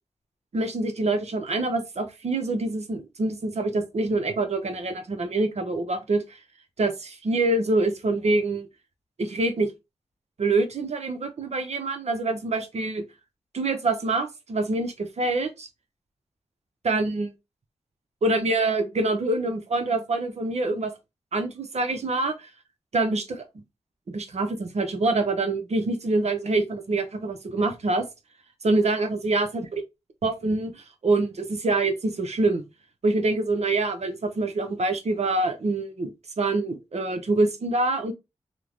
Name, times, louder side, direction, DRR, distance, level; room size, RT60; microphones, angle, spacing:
voice 1, 0.5-6.4 6.8-8.7 9.2-9.7 10.4-13.0 13.5-15.7 16.8-17.3 18.2-20.9 21.3-22.5 22.9-23.4 24.1-28.1 28.6-29.7 30.2-32.6 33.0-38.1, right 2 dB, 65° right, 0.7 m, -25 dB
3.1 x 2.1 x 2.4 m
cardioid pair, 50°, 12 cm